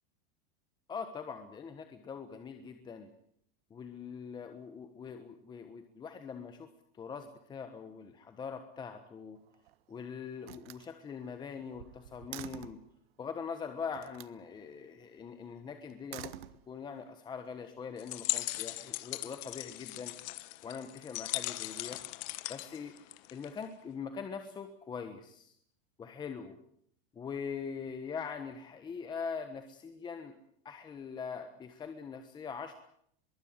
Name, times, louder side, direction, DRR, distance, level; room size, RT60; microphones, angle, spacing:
voice 1, 0.9-3.1 3.7-6.7 7.0-9.4 9.9-12.8 13.2-16.3 16.7-20.1 20.6-22.0 22.5-22.9 23.3-25.5 26.0-26.6 27.1-30.3 30.6-32.7, left 6 dB, 15° left, 7 dB, 1.3 m, -42 dB
Slam, 9.4-9.9 10.4-12.9 13.9-14.4 15.9-17.0, right 14 dB, 85° right, 1.1 m, -48 dB
sound 1, 18.0-23.6, left 20 dB, 50° left, 1.1 m, -39 dB
22.5 x 16.5 x 9.7 m, 0.69 s
supercardioid pair, 165°, 29 cm